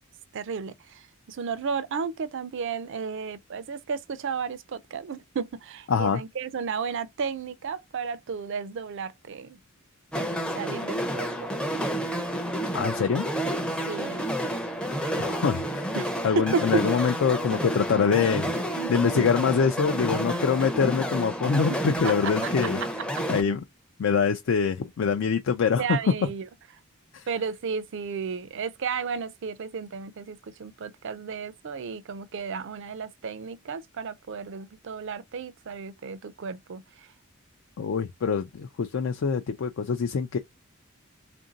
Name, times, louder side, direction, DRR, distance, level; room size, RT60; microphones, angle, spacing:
voice 1, 0.3-1.0 1.3-9.6 10.2-11.5 13.9-14.3 15.9-16.8 17.9-18.4 18.8-19.3 21.5-22.7 23.2-23.3 25.8-26.5 27.3-36.8, right 5 dB, 60° right, 0.4 m, -33 dB
voice 2, 5.9-6.2 12.7-13.2 15.2-15.9 16.2-18.5 18.9-22.8 23.3-23.6 24.0-26.3 27.1-27.3 37.8-40.4, left 6 dB, 60° left, 0.4 m, -24 dB
sound 1, 10.1-23.4, equal, 5° left, 0.5 m, -30 dB
3.5 x 2.6 x 3.9 m
head